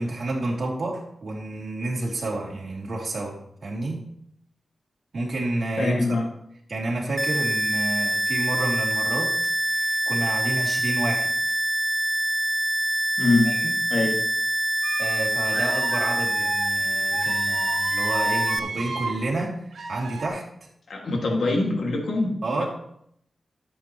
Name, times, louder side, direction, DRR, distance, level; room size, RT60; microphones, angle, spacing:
voice 1, 0.0-4.0 5.1-6.0 6.7-9.3 9.7-11.3 13.4-13.7 15.0-20.7 22.4-22.7, right 2 dB, 60° right, -2 dB, 2.8 m, -30 dB
voice 2, 5.8-6.3 13.2-13.5 13.9-14.2 20.9-22.7, left 2 dB, 75° left, 1 dB, 2.0 m, -23 dB
sound 1, 7.2-18.6, right 1 dB, 5° right, 0.4 m, -25 dB
sound 2, 14.8-15.1 15.5-16.7 17.1-19.2 19.7-20.3, right 3 dB, 80° right, 1.1 m, -32 dB
12.5 x 7.9 x 3.0 m, 0.71 s
wide cardioid pair, 100°, 0 cm